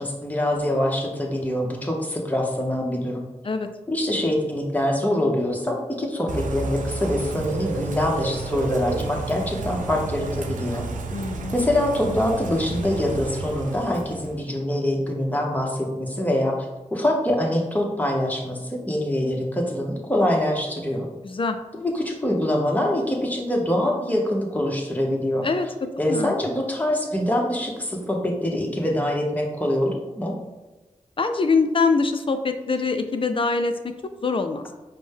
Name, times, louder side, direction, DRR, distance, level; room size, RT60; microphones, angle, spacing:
voice 1, 0.0-3.2 3.9-10.8 11.5-16.6 16.9-21.1 21.7-25.5 26.0-30.3, left 1 dB, 10° left, 0 dB, 1.0 m, -24 dB
Bird / Rain, 6.3-14.4, right 3 dB, 85° right, 0.4 m, -31 dB
voice 2, 11.1-11.7 12.0-12.2 21.2-21.6 25.4-25.7 26.1-26.3 31.2-33.7 34.2-34.7, left 4 dB, 45° left, 7 dB, 0.4 m, -23 dB
5.1 x 2.1 x 3.5 m, 1.2 s
cardioid pair, 40°, 13 cm